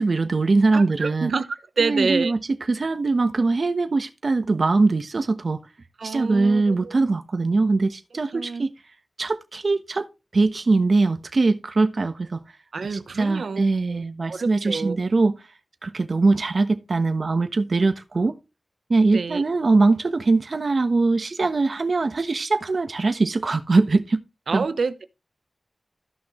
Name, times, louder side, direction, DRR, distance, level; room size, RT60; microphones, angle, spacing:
voice 1, 0.0-1.3 1.8-2.4 2.7-5.6 6.0-8.7 9.2-10.1 10.3-12.4 13.2-15.3 15.8-18.4 18.9-24.2 24.5-24.7, right 3 dB, 65° right, 1.2 m, -21 dB
voice 2, 0.7-2.3 6.0-7.2 8.3-8.6 12.7-15.0 19.1-19.4 24.5-25.0, right 4 dB, 85° right, 1.0 m, -28 dB
14.5 x 6.2 x 3.2 m
wide cardioid pair, 55°, 0 cm